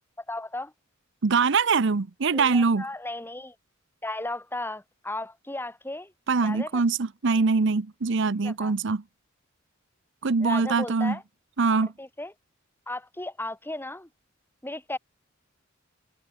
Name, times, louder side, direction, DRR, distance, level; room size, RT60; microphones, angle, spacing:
voice 1, 0.3-0.7 2.3-3.5 4.0-6.1 6.4-6.8 8.4-8.7 10.4-11.2 12.0-12.3 12.9-14.1 14.6-15.0, left 2 dB, 10° left, 3.1 m, -35 dB
voice 2, 1.2-2.9 6.3-9.0 10.2-11.2 11.6-11.9, right 4 dB, 65° right, 0.7 m, -23 dB
head